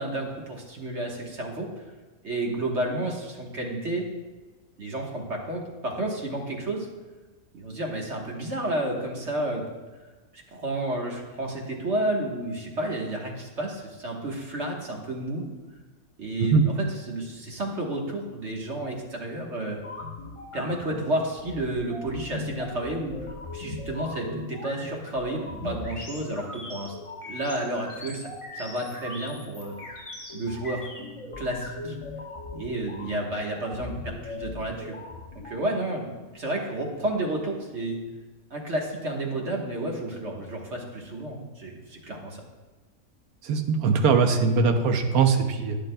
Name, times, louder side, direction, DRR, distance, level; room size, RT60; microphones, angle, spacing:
voice 1, 0.0-1.7 2.2-4.1 4.8-6.9 7.5-9.6 10.5-15.4 16.2-19.8 20.5-26.9 27.2-29.8 30.3-30.8 31.4-32.0 32.5-34.9 35.4-36.1 36.3-38.0 38.5-42.4, right 1 dB, 50° right, -1 dB, 1.5 m, -31 dB
sound 1, 19.7-35.6, left 2 dB, 25° left, 1.1 m, -39 dB
voice 2, 43.4-45.8, right 5 dB, 85° right, 5 dB, 1.2 m, -21 dB
12.0 x 10.0 x 2.2 m, 1.2 s
omnidirectional pair, 1.5 m